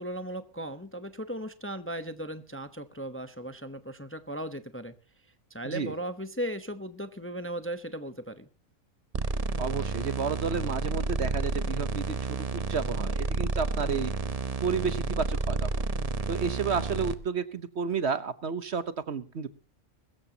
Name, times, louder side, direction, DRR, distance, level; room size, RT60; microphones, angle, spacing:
voice 1, 0.0-4.9 5.5-8.5, right 1 dB, 10° left, 10 dB, 0.8 m, -37 dB
voice 2, 5.6-5.9 9.6-14.1 14.6-15.8 16.3-19.5, right 5 dB, 55° right, 13 dB, 1.2 m, -31 dB
sound 1, 9.1-17.1, right 3 dB, 30° right, 0.9 m, -30 dB
22.0 x 14.0 x 2.9 m, 0.35 s
omnidirectional pair, 1.4 m